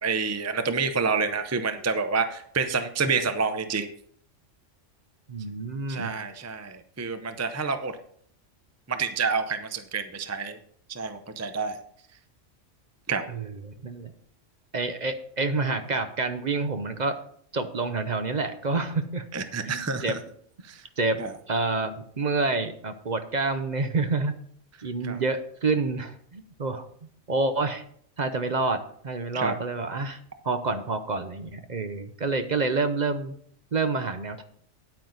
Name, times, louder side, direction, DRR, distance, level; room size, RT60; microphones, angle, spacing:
voice 1, 0.0-3.9 5.9-7.9 8.9-10.6 10.9-11.7 13.1-13.2 19.3-20.2 20.7-20.8 21.2-21.3 25.0-25.2 29.3-29.5, right 5 dB, 20° right, 8 dB, 0.5 m, -28 dB
voice 2, 5.3-6.1 13.3-14.1 14.7-17.1 17.5-19.2 19.7-20.2 21.0-21.2 21.5-24.3 24.8-26.9 27.3-27.8 28.2-28.8 29.0-30.2 30.4-33.3 33.7-34.4, right 3 dB, 40° right, 8 dB, 0.8 m, -28 dB
9.5 x 8.9 x 4.0 m, 0.62 s
omnidirectional pair, 1.3 m